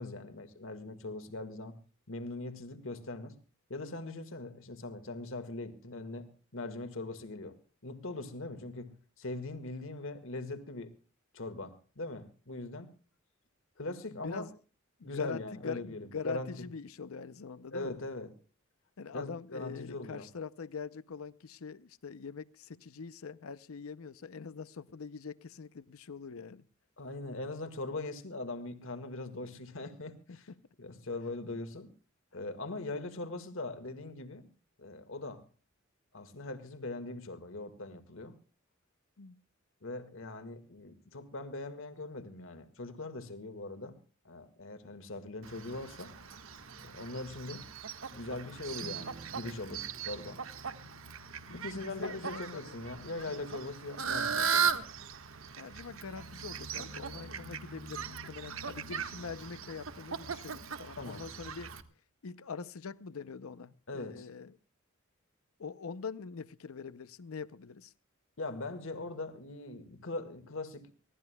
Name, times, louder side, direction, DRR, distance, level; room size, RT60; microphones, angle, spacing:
voice 1, 0.0-1.8 2.1-3.4 3.7-7.6 7.8-10.9 11.3-12.9 13.8-14.5 15.0-16.5 17.7-18.3 19.1-20.3 27.0-30.5 30.8-31.9 32.3-34.5 34.8-35.4 36.1-38.4 39.8-44.0 44.3-46.1 46.8-47.7 48.1-50.4 51.5-54.8 61.0-61.2 63.9-64.3 68.4-70.9, left 2 dB, 70° left, 1.8 m, -41 dB
voice 2, 14.1-14.6 15.0-18.0 19.0-26.6 30.3-30.6 39.2-39.4 50.6-50.8 51.5-52.8 53.3-53.4 55.6-61.7 62.2-64.6 65.6-67.9, left 5 dB, 90° left, 0.6 m, -43 dB
Fowl, 45.4-61.8, right 6 dB, 70° right, 1.5 m, -38 dB
Strum, 48.8-55.6, right 3 dB, 45° right, 0.8 m, -56 dB
24.5 x 17.0 x 2.3 m
head